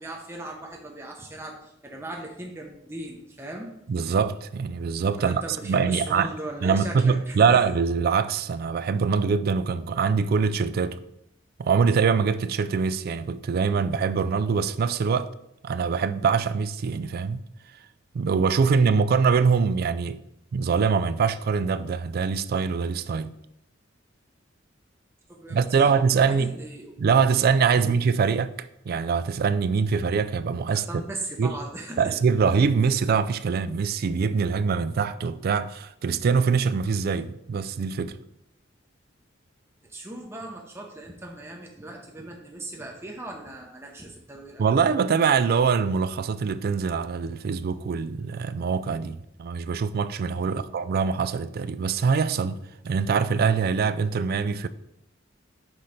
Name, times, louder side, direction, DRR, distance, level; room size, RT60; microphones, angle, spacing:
voice 1, 0.0-3.7 5.2-7.6 25.3-26.9 27.7-27.9 30.7-32.1 39.8-44.6 50.4-50.7, right 2 dB, 15° right, 0.7 m, -38 dB
voice 2, 3.9-6.3 6.6-11.0 11.6-15.3 15.6-17.4 18.1-20.2 20.5-23.4 25.5-26.5 27.0-30.9 31.4-31.6 32.0-38.2 44.6-52.6 52.8-54.7, right 5 dB, 50° right, 0.3 m, -23 dB
6.0 x 4.1 x 4.9 m
head